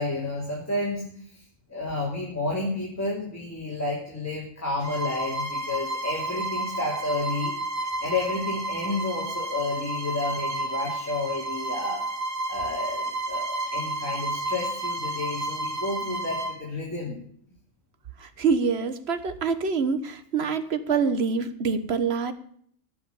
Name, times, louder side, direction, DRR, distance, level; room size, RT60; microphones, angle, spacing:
voice 1, 0.0-1.4 1.7-7.5 8.0-12.0 12.5-17.2, left 2 dB, 10° left, -3 dB, 2.9 m, -31 dB
Bowed string instrument, 4.8-16.6, right 1 dB, 70° right, 3.5 m, -31 dB
voice 2, 18.2-22.3, right 5 dB, 55° right, 11 dB, 1.3 m, -25 dB
16.5 x 6.3 x 6.9 m, 0.63 s
omnidirectional pair, 1.4 m